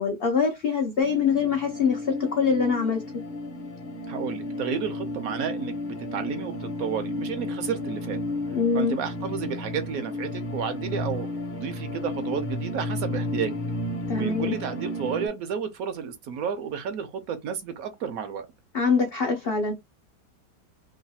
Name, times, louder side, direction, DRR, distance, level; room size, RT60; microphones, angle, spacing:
voice 1, 0.0-3.0 8.5-9.0 14.1-14.6 18.7-19.7, left 5 dB, 75° left, 0.5 m, -24 dB
sound 1, 1.0-15.3, left 1 dB, 40° left, 0.7 m, -33 dB
voice 2, 4.1-8.2 8.7-13.5 14.1-18.5, right 7 dB, 70° right, 0.9 m, -32 dB
3.1 x 2.3 x 2.7 m
omnidirectional pair, 1.8 m